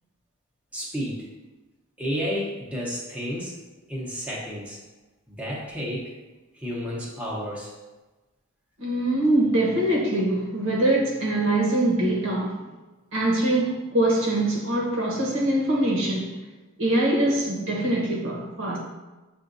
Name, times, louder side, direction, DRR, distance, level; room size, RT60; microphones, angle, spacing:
voice 1, 0.7-1.2 2.0-3.6 3.9-4.8 5.3-6.1 6.5-7.7, equal, 5° right, 0.9 m, -31 dB
voice 2, 8.8-12.6 13.1-16.4 16.8-18.8, right 1 dB, 65° right, 1.1 m, -23 dB
7.1 x 2.5 x 2.6 m
head